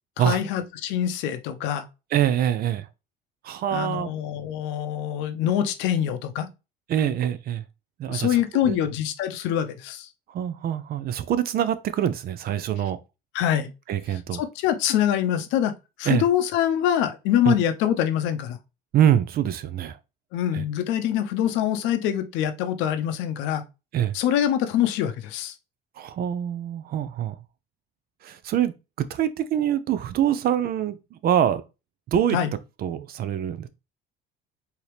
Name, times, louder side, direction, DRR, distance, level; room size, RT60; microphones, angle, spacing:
voice 1, 0.2-1.8 3.7-6.5 8.1-10.1 13.3-13.7 14.1-15.7 16.0-18.6 20.3-23.6 24.1-25.5 32.3-32.5, left 10 dB, 85° left, 0.7 m, -24 dB
voice 2, 2.1-2.8 3.4-4.1 6.9-7.6 8.0-8.4 8.7-8.8 10.3-13.0 13.9-14.4 16.1-16.2 17.5-17.6 18.9-20.0 20.5-20.6 23.9-24.1 26.0-27.3 28.2-28.7 29.0-31.0 31.2-31.6 32.1-32.4 32.8-33.7, right 10 dB, 55° right, 0.6 m, -24 dB
4.5 x 2.9 x 3.2 m
cardioid pair, 120°, 19 cm